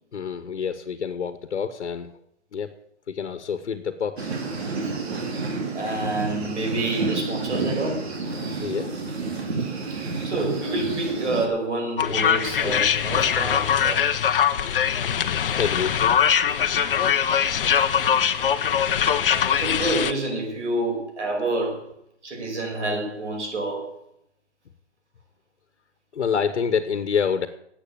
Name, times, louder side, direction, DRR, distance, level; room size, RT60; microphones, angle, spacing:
voice 1, 0.1-2.1 2.5-2.7 3.1-4.3 8.6-9.1 12.0-12.2 12.6-12.8 15.6-16.0 19.0-19.1 26.1-27.5, left 6 dB, 75° left, 1.4 m, -27 dB
sound 1, 4.2-11.5, right 4 dB, 65° right, 3.4 m, -30 dB
voice 2, 5.7-8.0 9.6-14.0 19.0-19.2 19.6-21.9 22.2-23.9, right 2 dB, 85° right, 6.0 m, -28 dB
sound 2, 12.0-20.1, left 8 dB, 50° left, 0.9 m, -22 dB
12.0 x 8.4 x 8.6 m
hypercardioid pair, 165°, 34 cm